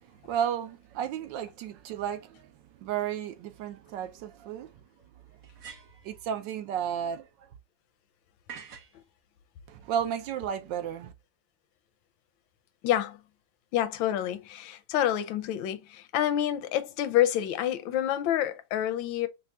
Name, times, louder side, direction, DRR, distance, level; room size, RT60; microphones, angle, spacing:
voice 1, 0.2-2.5 2.8-4.7 6.0-7.3 9.7-11.1, right 9 dB, 80° right, 1.3 m, -33 dB
sound 1, 3.6-3.7 5.4-6.1 8.5-9.0, right 7 dB, 60° right, 1.7 m, -45 dB
voice 2, 12.8-13.2 13.7-19.3, left 11 dB, 85° left, 1.3 m, -28 dB
5.5 x 2.3 x 2.4 m
omnidirectional pair, 2.0 m